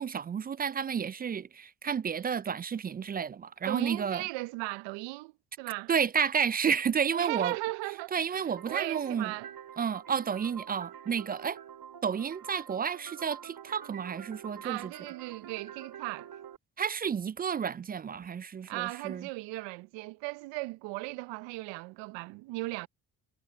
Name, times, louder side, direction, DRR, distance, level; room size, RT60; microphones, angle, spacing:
voice 1, 0.0-4.2 5.9-7.6 8.1-9.3 9.8-11.6 12.0-14.9 16.8-19.3, right 7 dB, 25° right, 0.3 m, -31 dB
voice 2, 3.7-5.9 7.1-9.5 14.6-16.3 18.7-22.9, right 22 dB, 75° right, 0.8 m, -37 dB
sound 1, 8.6-16.6, right 9 dB, 55° right, 5.0 m, -47 dB
hypercardioid pair, 55°, 43 cm